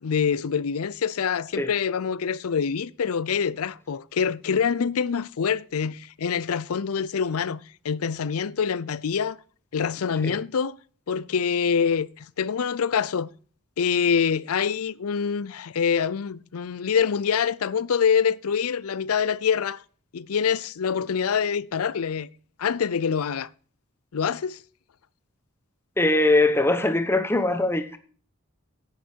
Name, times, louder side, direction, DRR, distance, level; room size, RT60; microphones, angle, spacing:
voice 1, 0.0-9.4 9.7-10.8 11.1-13.3 13.8-19.8 20.1-22.3 22.6-23.5 24.1-24.6, left 6 dB, 80° left, 0.5 m, -25 dB
voice 2, 26.0-28.0, left 2 dB, 10° left, 1.0 m, -21 dB
10.5 x 8.0 x 4.5 m
head